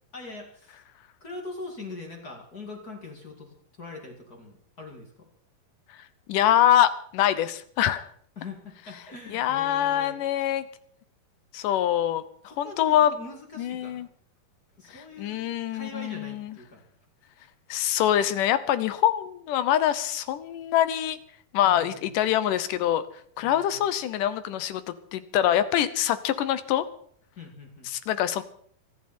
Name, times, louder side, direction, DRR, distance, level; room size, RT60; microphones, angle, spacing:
voice 1, 0.1-0.8 1.2-5.3 8.4-10.2 12.5-14.1 14.8-15.4 15.7-16.8 21.6-22.1 23.4-23.9 27.4-27.9, left 3 dB, 30° left, 1 dB, 2.2 m, -42 dB
voice 2, 6.3-8.1 9.3-10.6 11.5-12.2 12.6-13.1 13.6-14.1 14.9-16.5 17.7-21.2 21.5-23.0 23.4-24.8 25.1-26.9 27.9-28.4, left 11 dB, 75° left, 13 dB, 2.2 m, -24 dB
25.0 x 11.0 x 4.3 m, 0.62 s
omnidirectional pair, 4.1 m